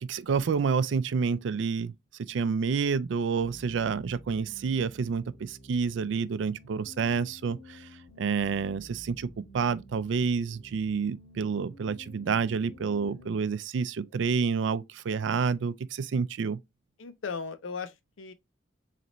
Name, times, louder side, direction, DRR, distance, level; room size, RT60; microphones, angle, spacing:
voice 1, 0.0-1.9 2.2-7.9 8.2-16.6, right 5 dB, 70° right, 0.4 m, -29 dB
sound 1, 3.4-13.4, equal, 60° left, 1.6 m, -52 dB
voice 2, 12.9-13.3 17.0-18.3, left 5 dB, 90° left, 0.6 m, -38 dB
3.9 x 3.3 x 3.0 m
head